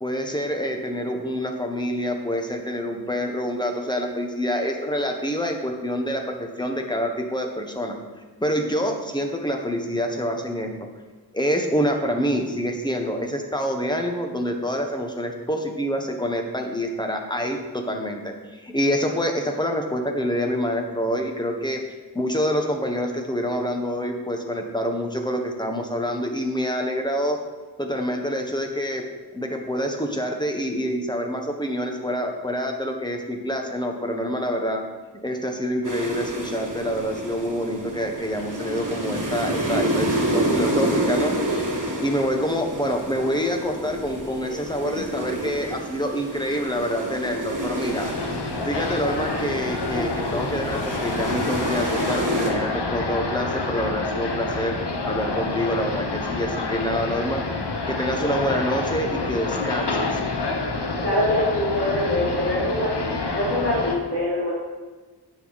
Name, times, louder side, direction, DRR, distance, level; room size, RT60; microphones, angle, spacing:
voice 1, 0.0-7.9 8.4-10.7 11.3-21.8 22.1-27.4 27.8-29.0 29.3-34.8 35.2-41.7 42.0-48.1 48.6-54.8 55.1-57.4 57.9-60.2, equal, 10° left, 3 dB, 1.1 m, -26 dB
sound 1, 35.8-52.5, right 1 dB, 50° right, 1.5 m, -29 dB
sound 2, 47.8-64.0, left 3 dB, 80° left, 0.9 m, -28 dB
voice 2, 61.0-62.9 63.3-64.5, left 1 dB, 30° left, -10 dB, 2.8 m, -24 dB
9.1 x 6.7 x 4.1 m, 1.3 s
wide cardioid pair, 55°, 40 cm